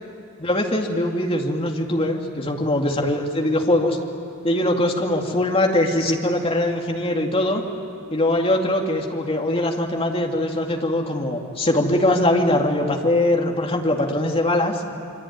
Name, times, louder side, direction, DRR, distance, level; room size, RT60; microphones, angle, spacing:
voice 1, 0.4-4.0 4.4-7.6 8.1-14.8, left 1 dB, 25° left, 1 dB, 2.4 m, -21 dB
25.5 x 24.5 x 9.5 m, 2.6 s
head